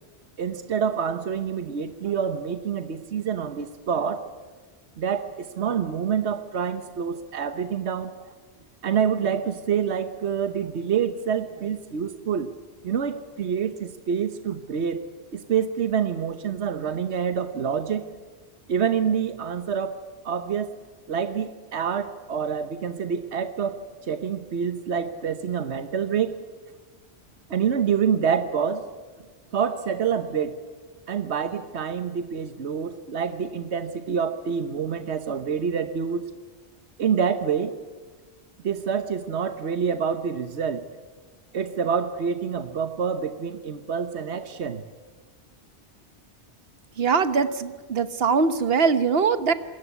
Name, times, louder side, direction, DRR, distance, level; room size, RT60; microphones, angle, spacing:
voice 1, 0.4-4.3 5.0-8.1 8.8-12.5 12.8-15.0 15.3-18.1 18.7-20.7 21.1-23.8 24.1-26.4 27.5-28.9 29.5-30.6 31.1-36.2 37.0-37.8 38.6-40.9 41.5-44.8, right 7 dB, 80° right, 9 dB, 1.3 m, -27 dB
voice 2, 47.0-49.5, right 5 dB, 65° right, 12 dB, 1.4 m, -22 dB
27.5 x 21.5 x 8.3 m, 1.4 s
omnidirectional pair, 1.1 m